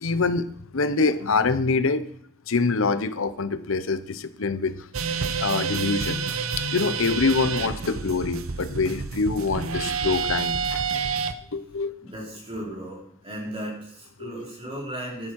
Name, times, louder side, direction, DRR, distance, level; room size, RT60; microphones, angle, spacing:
voice 1, 0.0-0.5 0.7-2.0 2.5-4.8 5.1-6.2 6.7-10.8 11.5-11.9 14.2-14.3, left 4 dB, 70° left, 13 dB, 0.8 m, -25 dB
sound 1, 4.9-11.3, right 5 dB, 80° right, 0.8 m, -28 dB
voice 2, 12.0-15.3, right 1 dB, 25° right, -4 dB, 3.9 m, -36 dB
12.0 x 11.0 x 4.7 m, 0.64 s
head